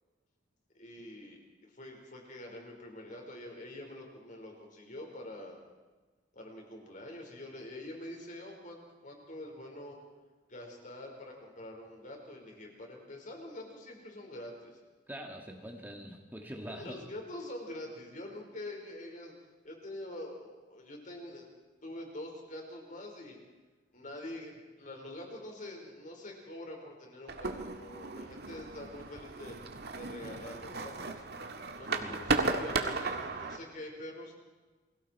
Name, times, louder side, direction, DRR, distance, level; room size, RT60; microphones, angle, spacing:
voice 1, 0.7-5.6 6.3-10.0 10.5-14.8 16.7-19.3 19.6-21.5 21.8-23.4 23.9-29.6 29.9-31.2 31.7-34.4, left 1 dB, 45° left, 1 dB, 5.2 m, -45 dB
voice 2, 15.1-17.1 32.0-32.4, equal, 10° right, 1 dB, 1.9 m, -44 dB
sound 1, 27.3-33.6, right 3 dB, 60° right, 1.9 m, -35 dB
29.5 x 22.5 x 4.7 m, 1.3 s
head